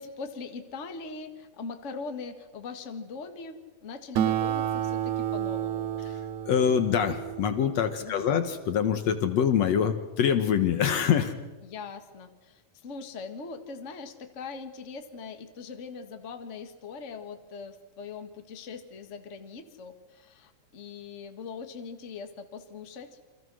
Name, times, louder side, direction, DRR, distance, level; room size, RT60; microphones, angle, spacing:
voice 1, 0.0-5.9 8.0-8.4 11.6-23.3, left 4 dB, 30° left, 7 dB, 1.6 m, -41 dB
Acoustic guitar, 4.2-9.0, right 11 dB, 75° right, 2.3 m, -31 dB
voice 2, 6.5-11.3, left 8 dB, 65° left, 9 dB, 2.2 m, -25 dB
29.0 x 25.5 x 6.3 m, 1.2 s
omnidirectional pair, 3.6 m